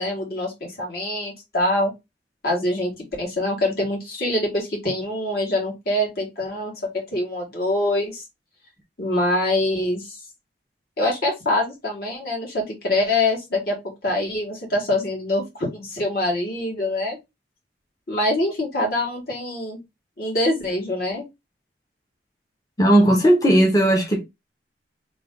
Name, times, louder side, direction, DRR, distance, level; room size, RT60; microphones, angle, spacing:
voice 1, 0.0-1.9 2.4-2.9 3.2-6.7 7.1-8.2 9.0-10.2 11.0-13.8 14.0-17.2 18.1-19.8 20.2-21.3, left 1 dB, 55° left, 1.8 m, -24 dB
voice 2, 22.8-24.2, right 1 dB, 20° left, 0.8 m, -16 dB
3.3 x 2.7 x 3.7 m
head